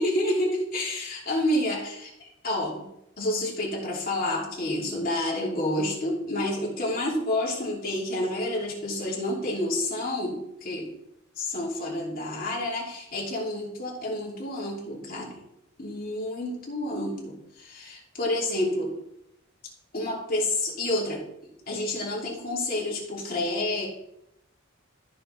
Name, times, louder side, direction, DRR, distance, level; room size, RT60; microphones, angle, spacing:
voice 1, 0.0-2.9 3.2-10.9 11.4-15.4 15.8-18.9 19.9-21.2 21.7-23.9, left 1 dB, 45° left, -4 dB, 3.0 m, -29 dB
14.0 x 6.4 x 3.4 m, 0.81 s
head